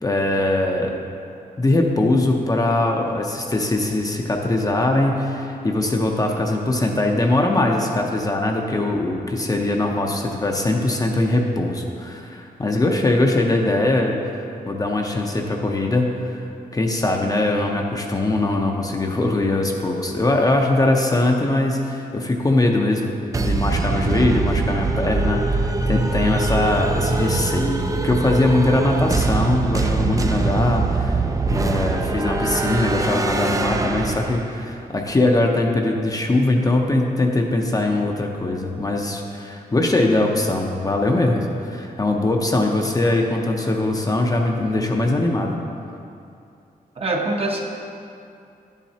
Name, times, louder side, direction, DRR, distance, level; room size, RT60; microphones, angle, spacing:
voice 1, 0.0-1.0 1.6-14.2 14.7-31.2 31.5-45.6, left 2 dB, 25° left, 1 dB, 0.6 m, -21 dB
sound 1, 23.3-34.7, right 3 dB, 20° right, 0.4 m, -23 dB
voice 2, 47.0-47.6, right 2 dB, 40° right, 0 dB, 0.8 m, -23 dB
11.0 x 7.3 x 2.8 m, 2.6 s
wide cardioid pair, 140°, 15 cm